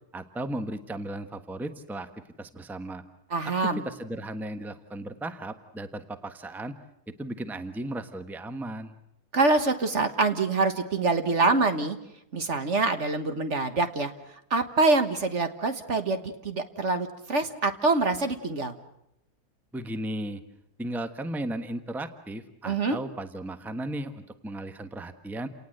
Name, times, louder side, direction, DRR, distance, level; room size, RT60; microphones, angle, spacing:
voice 1, 0.1-2.1 2.4-3.0 3.4-3.5 3.8-6.8 7.2-8.9 19.7-20.4 20.8-25.5, right 1 dB, ahead, 9 dB, 1.2 m, -35 dB
voice 2, 3.3-3.8 9.3-12.0 12.3-14.1 14.5-18.7 22.6-23.0, right 3 dB, 50° right, 8 dB, 1.6 m, -25 dB
29.5 x 19.0 x 7.9 m, 0.80 s
omnidirectional pair, 1.7 m